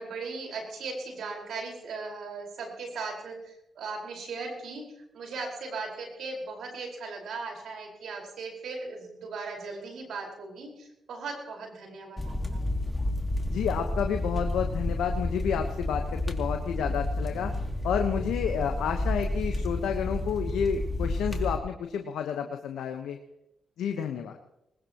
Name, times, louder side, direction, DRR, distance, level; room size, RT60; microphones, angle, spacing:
voice 1, 0.0-4.8 5.1-12.6, right 4 dB, 75° right, 0 dB, 5.0 m, -38 dB
sound 1, 12.2-21.6, left 1 dB, 15° left, 2.7 m, -30 dB
voice 2, 13.5-17.5 17.8-23.2 23.8-24.4, left 7 dB, 80° left, 5 dB, 1.2 m, -30 dB
20.5 x 19.5 x 3.1 m, 0.84 s
supercardioid pair, 50°, 0 cm